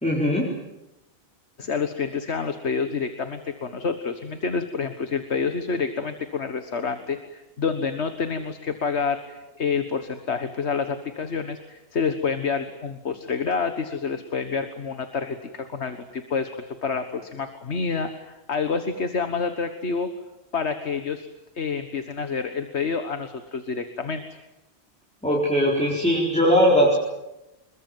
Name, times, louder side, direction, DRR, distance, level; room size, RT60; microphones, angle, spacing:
voice 1, 0.0-0.5 25.2-26.9, equal, 5° left, -4 dB, 4.6 m, -20 dB
voice 2, 1.6-16.5 16.8-20.1 20.5-21.3 21.6-24.2, left 5 dB, 85° left, 8 dB, 1.7 m, -28 dB
27.0 x 22.0 x 9.2 m, 0.95 s
omnidirectional pair, 1.1 m